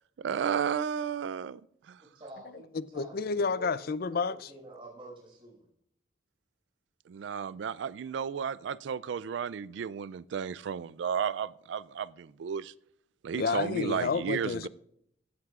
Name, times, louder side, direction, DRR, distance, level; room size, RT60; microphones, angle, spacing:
voice 1, 0.2-1.6 1.9-2.0 7.1-12.7 13.2-14.7, right 7 dB, 70° right, 0.3 m, -33 dB
voice 2, 2.0-2.6 2.9-3.7 4.0-5.6, right 2 dB, 30° right, 5.2 m, -48 dB
voice 3, 2.7-4.5 13.3-14.7, left 4 dB, 55° left, 0.4 m, -30 dB
16.0 x 10.5 x 2.4 m
head